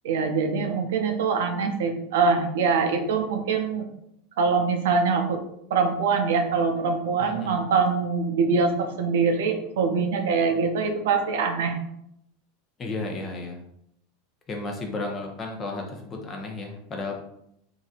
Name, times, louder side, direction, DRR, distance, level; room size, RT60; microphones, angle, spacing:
voice 1, 0.0-3.9 4.4-5.4 5.7-11.8, right 5 dB, 80° right, 4 dB, 0.5 m, -24 dB
voice 2, 7.2-7.5 12.8-13.6 14.5-17.2, left 2 dB, 30° left, 1 dB, 0.7 m, -33 dB
3.1 x 2.6 x 2.4 m, 0.75 s
supercardioid pair, 120°, 0 cm